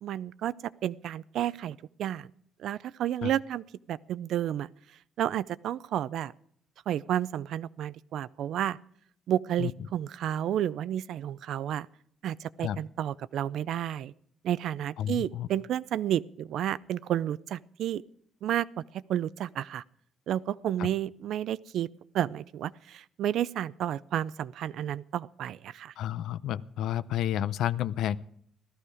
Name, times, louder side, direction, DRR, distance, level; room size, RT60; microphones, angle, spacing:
voice 1, 0.0-2.3 2.6-4.7 5.2-6.3 6.9-8.8 9.3-11.9 12.2-14.1 14.4-18.0 18.4-18.7 18.9-19.8 20.3-21.9 22.1-25.9, right 11 dB, 70° right, 18 dB, 0.5 m, -31 dB
voice 2, 15.0-15.5 20.8-20.9 26.0-28.2, left 11 dB, 75° left, 14 dB, 0.6 m, -30 dB
16.0 x 13.5 x 4.9 m, 0.63 s
cardioid pair, 140°, 0 cm